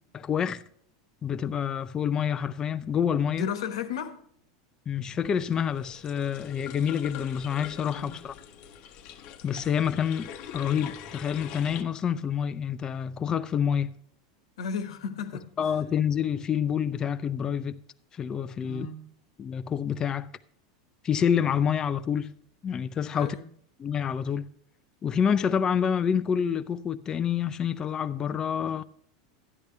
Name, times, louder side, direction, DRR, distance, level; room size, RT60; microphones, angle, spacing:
voice 1, 0.1-0.6 1.2-3.5 4.9-8.3 9.4-13.9 15.6-17.8 18.1-18.9 19.4-20.3 21.0-22.3 22.6-23.4 23.8-24.5 25.0-28.8, left 8 dB, 25° left, 0.5 m, -27 dB
voice 2, 3.3-4.2 8.0-8.2 14.6-15.5 18.6-19.1 23.1-23.5, left 6 dB, 85° left, 1.3 m, -34 dB
sound 1, 5.2-11.8, left 9 dB, 50° left, 1.0 m, -43 dB
12.0 x 10.5 x 3.3 m
supercardioid pair, 125°, 3 cm